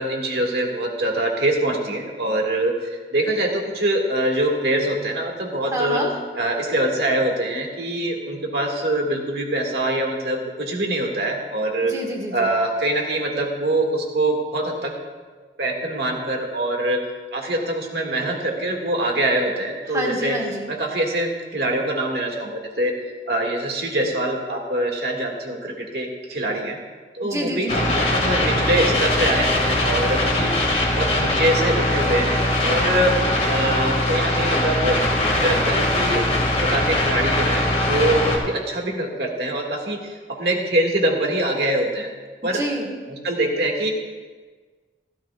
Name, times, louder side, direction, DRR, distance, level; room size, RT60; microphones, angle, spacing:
voice 1, 0.0-2.7 3.1-6.0 6.3-11.9 12.3-14.9 15.6-17.0 17.3-20.4 20.7-22.9 23.3-26.8 27.1-30.5 30.9-33.2 33.5-35.0 35.4-36.3 36.6-42.1 42.4-42.6 43.2-43.9, right 1 dB, 65° right, 1 dB, 1.8 m, -24 dB
voice 2, 5.7-6.1 11.8-12.5 19.9-20.7 27.2-27.9 42.5-42.9, right 1 dB, 20° right, 0 dB, 1.6 m, -27 dB
sound 1, 27.7-38.4, left 1 dB, 35° left, 1.9 m, -21 dB
15.0 x 13.0 x 2.3 m, 1.4 s
head